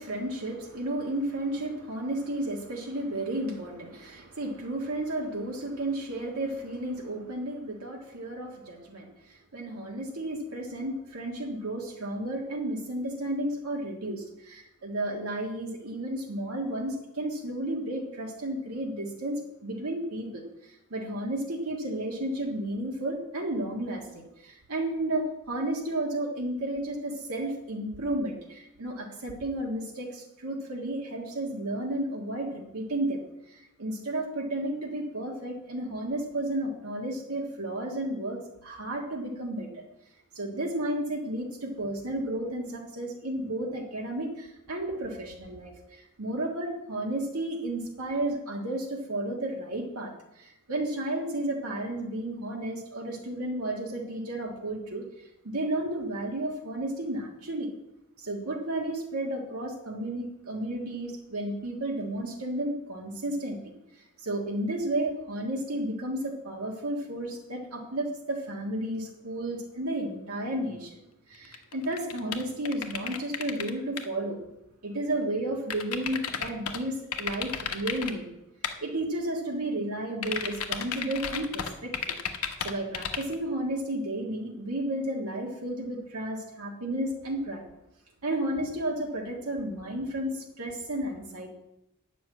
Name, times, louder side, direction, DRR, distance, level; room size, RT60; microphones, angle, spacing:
voice 1, 0.0-33.2 33.5-39.8 40.3-55.0 55.4-57.7 58.2-63.6 63.9-71.0 71.3-74.4 74.8-78.3 78.8-82.2 82.6-87.6 88.2-91.5, right 1 dB, 80° right, 0 dB, 1.7 m, -32 dB
sound 1, 71.4-73.7 74.0-74.1 75.7-76.8 77.1-78.1 78.6-78.7 80.2-83.3, left 7 dB, 85° left, 1.1 m, -32 dB
9.9 x 6.2 x 8.4 m, 0.87 s
head